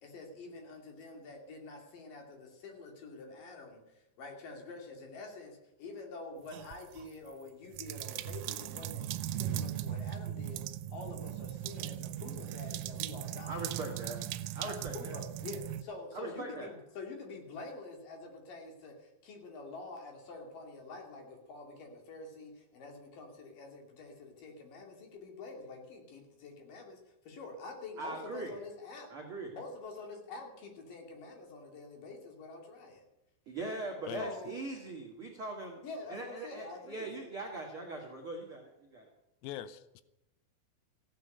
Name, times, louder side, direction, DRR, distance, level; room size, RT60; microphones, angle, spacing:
voice 1, 0.0-10.6 10.9-13.5 14.6-27.0 27.2-29.1 29.5-33.0 34.1-34.5 35.8-37.1, left 3 dB, 50° left, 2 dB, 3.5 m, -47 dB
sound 1, 6.5-7.1 7.7-15.8, right 12 dB, 85° right, 3.4 m, -38 dB
voice 2, 13.5-14.2 14.5-15.2 16.1-16.7 28.0-28.5 29.1-29.5 33.4-35.8 36.1-39.1, right 2 dB, 55° right, 1 dB, 1.4 m, -41 dB
voice 3, 39.4-40.0, left 12 dB, 90° left, 14 dB, 3.5 m, -42 dB
15.5 x 9.8 x 7.9 m, 0.92 s
omnidirectional pair, 5.9 m